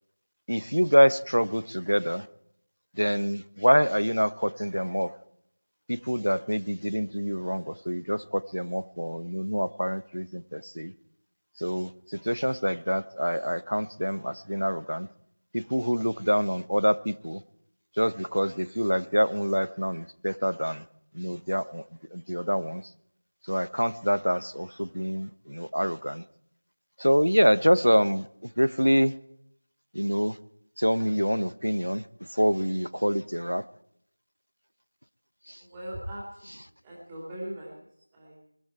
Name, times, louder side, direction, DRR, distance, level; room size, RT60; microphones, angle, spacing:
voice 1, 0.5-2.3 3.0-5.1 5.9-10.9 11.6-15.1 15.5-17.4 18.0-20.8 21.1-21.8 22.1-22.8 23.5-26.2 27.0-29.1 29.9-30.4 30.8-32.0 32.3-33.6 35.5-35.6, equal, 90° right, 16 dB, 0.9 m, -26 dB
voice 2, 35.6-36.5 36.8-37.8 38.1-38.4, right 1 dB, 5° right, -6 dB, 2.8 m, -39 dB
22.5 x 12.5 x 4.8 m, 0.71 s
figure-of-eight pair, 175°, 0 cm